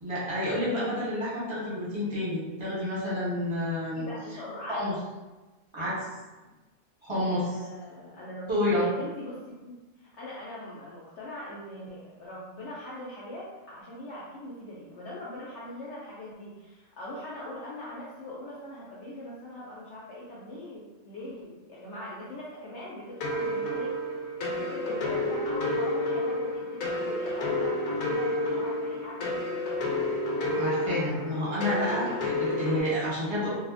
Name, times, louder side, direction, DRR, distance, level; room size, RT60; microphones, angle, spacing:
voice 1, 0.0-4.1 4.7-5.0 5.7-6.1 7.0-7.7 8.5-8.9 30.5-33.5, left 1 dB, 25° right, -10 dB, 1.0 m, -29 dB
voice 2, 3.9-4.8 7.4-23.9 24.4-29.6, left 1 dB, 65° left, -6 dB, 0.8 m, -41 dB
sound 1, 23.2-32.8, left 1 dB, 90° left, 1.0 m, -30 dB
2.7 x 2.4 x 2.4 m, 1.1 s
omnidirectional pair, 1.4 m